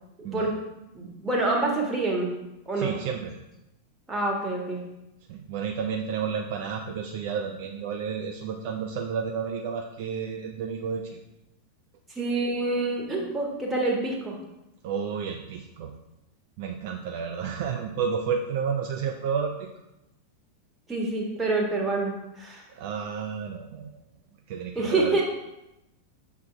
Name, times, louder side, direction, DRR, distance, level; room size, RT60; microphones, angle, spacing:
voice 1, 0.9-2.3 2.7-2.9 4.1-4.8 12.1-14.4 20.9-22.6 24.7-25.2, right 2 dB, 15° right, -2 dB, 1.5 m, -27 dB
voice 2, 2.8-3.3 5.3-11.2 14.8-15.9 16.6-19.7 22.7-24.0 24.5-25.2, right 6 dB, 50° right, 3 dB, 0.4 m, -31 dB
6.3 x 3.5 x 4.5 m, 0.93 s
figure-of-eight pair, 90°, 0 cm